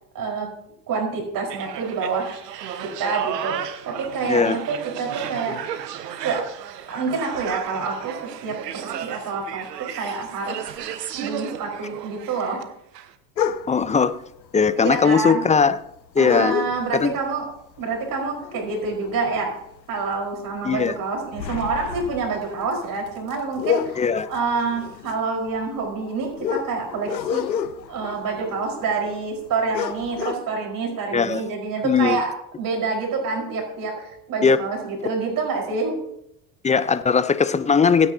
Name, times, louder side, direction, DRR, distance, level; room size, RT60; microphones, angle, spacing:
voice 1, 0.1-0.5 0.9-2.4 2.8-5.5 6.2-6.4 6.9-10.6 11.2-12.6 14.8-15.4 16.2-17.5 17.8-19.5 19.9-24.0 24.3-27.5 27.9-32.3 32.6-36.0, right 4 dB, 40° right, 0 dB, 4.8 m, -27 dB
sound 1, 1.5-12.6 12.9-13.1, right 9 dB, 75° right, 1.2 m, -34 dB
sound 2, 13.4-13.9 14.9-15.0 15.3-15.4 16.3-17.2 17.6-17.8 18.2-19.8 20.1-20.3 20.8-29.1 29.5-29.6 29.7-30.3, left 8 dB, 90° left, 0.8 m, -29 dB
voice 2, 13.7-14.2 14.5-15.8 16.1-16.5 16.9-17.1 20.6-20.9 24.0-24.3 31.1-31.4 31.8-32.2 34.4-34.6 36.6-38.1, left 5 dB, 15° left, 14 dB, 0.6 m, -19 dB
25.5 x 9.4 x 2.8 m, 0.77 s
hypercardioid pair, 75°, 49 cm